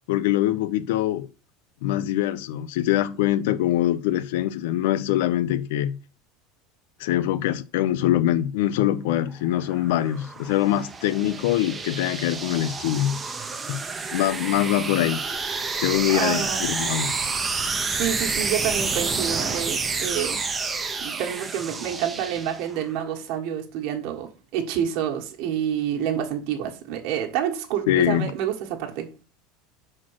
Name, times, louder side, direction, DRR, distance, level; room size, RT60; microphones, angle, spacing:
voice 1, 0.1-1.3 1.8-6.0 7.0-13.2 13.7-13.8 14.1-15.2 15.7-17.2 27.9-28.3, left 13 dB, 75° left, 0.5 m, -23 dB
sound 1, 9.5-22.9, right 4 dB, 15° right, 0.6 m, -29 dB
voice 2, 16.1-16.6 17.9-20.4 21.0-29.1, right 9 dB, 50° right, 1.5 m, -28 dB
6.1 x 4.4 x 6.2 m
supercardioid pair, 165°, 0 cm